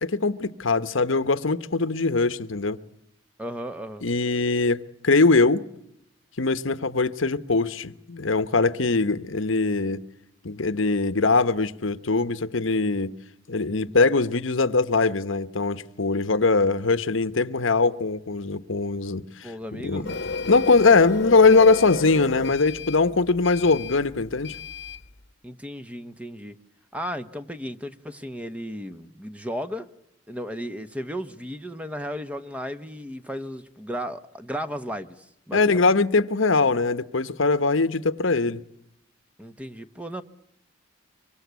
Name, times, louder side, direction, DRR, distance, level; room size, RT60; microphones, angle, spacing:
voice 1, 0.0-2.8 4.0-5.6 6.4-10.0 10.4-13.1 13.5-20.1 20.5-24.5 35.5-38.6, left 3 dB, 75° left, 1.1 m, -21 dB
voice 2, 3.4-4.1 19.4-20.5 25.4-26.6 26.9-29.9 30.3-35.9 39.4-40.2, equal, 5° right, 1.0 m, -35 dB
Printer, 20.0-25.1, left 4 dB, 55° left, 1.1 m, -33 dB
25.0 x 25.0 x 8.3 m
head